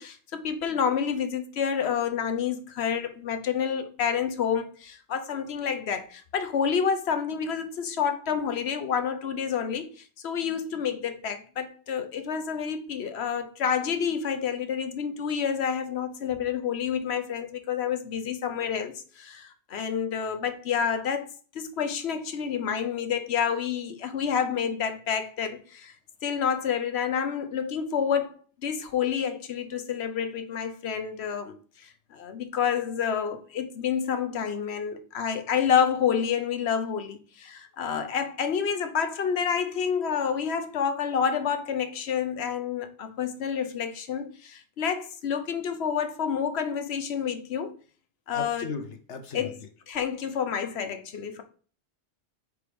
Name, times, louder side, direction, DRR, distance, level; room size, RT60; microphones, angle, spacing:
voice 1, 0.0-9.9 10.2-21.3 21.5-25.9 26.2-28.3 28.6-47.7 48.3-48.7 49.3-49.5 49.9-51.4, left 7 dB, 70° left, 1.1 m, -29 dB
voice 2, 48.3-49.5, left 5 dB, 85° left, 1.3 m, -36 dB
4.9 x 4.8 x 5.1 m
omnidirectional pair, 1.1 m